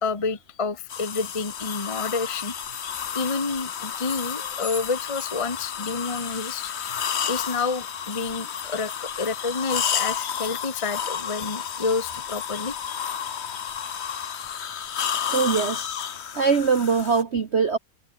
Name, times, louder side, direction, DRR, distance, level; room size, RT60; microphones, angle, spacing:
voice 1, 0.0-2.5 3.1-6.7 7.2-12.8, left 4 dB, 15° left, 1.3 m, -29 dB
sound 1, 0.9-17.2, left 8 dB, 50° left, 0.7 m, -31 dB
voice 2, 15.3-15.9 16.3-17.8, right 5 dB, 40° right, 1.2 m, -22 dB
omnidirectional pair, 2.3 m